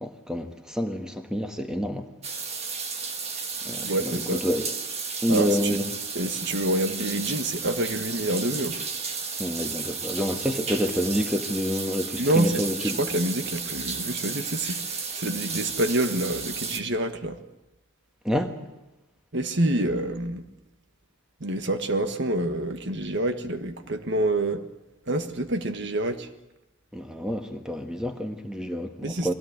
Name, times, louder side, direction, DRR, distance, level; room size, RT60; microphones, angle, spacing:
voice 1, 0.0-2.1 3.6-4.7 5.2-5.8 9.4-13.0 18.2-18.5 26.9-29.3, equal, 5° right, 5 dB, 1.6 m, -28 dB
sound 1, 2.2-16.8, right 5 dB, 30° right, 1.6 m, -33 dB
voice 2, 3.8-4.4 5.3-5.8 6.1-8.8 12.2-12.6 13.0-17.4 19.3-20.5 21.4-24.6 25.1-26.3 29.0-29.3, right 1 dB, 50° right, 8 dB, 1.5 m, -27 dB
22.0 x 17.0 x 9.7 m, 1.0 s
head